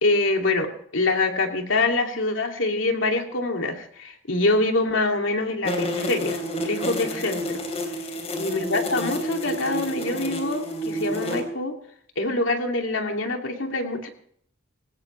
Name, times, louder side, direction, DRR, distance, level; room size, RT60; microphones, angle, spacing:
voice 1, 0.0-7.6 8.3-11.8 12.2-14.1, left 2 dB, 85° left, 3 dB, 2.6 m, -25 dB
sound 1, 5.6-11.4, equal, 35° left, 3.2 m, -29 dB
21.0 x 18.5 x 3.3 m, 0.64 s
head